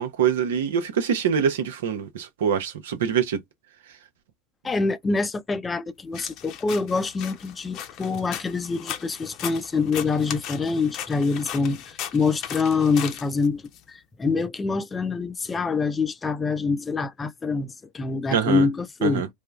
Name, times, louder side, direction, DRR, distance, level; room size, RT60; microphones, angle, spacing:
voice 1, 0.0-3.4 18.3-18.7 19.0-19.3, right 7 dB, 75° right, 0.9 m, -24 dB
voice 2, 4.6-13.6 13.9-19.3, left 4 dB, 20° left, 0.6 m, -25 dB
sound 1, 6.1-13.8, left 10 dB, 50° left, 0.8 m, -37 dB
3.6 x 2.1 x 3.5 m
hypercardioid pair, 90°, 0 cm